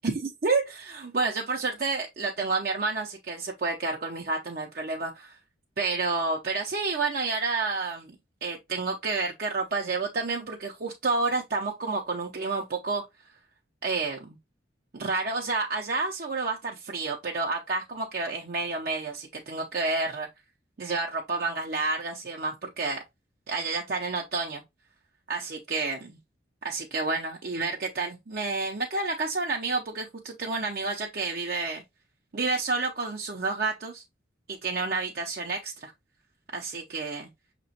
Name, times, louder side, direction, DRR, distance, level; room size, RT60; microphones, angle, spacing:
voice 1, 0.0-5.4 5.8-8.1 8.4-13.1 13.8-14.4 14.9-20.3 20.8-23.0 23.5-24.6 25.3-26.2 26.6-31.8 32.3-34.0 34.5-35.9 36.5-37.3, right 3 dB, 50° right, 0.6 m, -30 dB
5.9 x 3.0 x 2.7 m
head